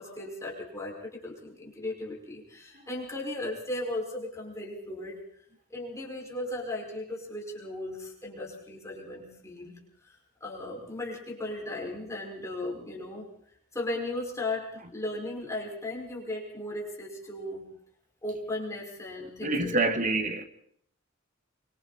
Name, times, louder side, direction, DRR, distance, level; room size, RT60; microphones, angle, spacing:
voice 1, 0.0-5.2 5.7-9.7 10.0-13.3 13.7-17.7 18.2-19.9, left 1 dB, 15° left, 5.6 m, -36 dB
voice 2, 19.4-20.4, right 2 dB, 40° right, 1.8 m, -26 dB
25.5 x 24.5 x 4.3 m
head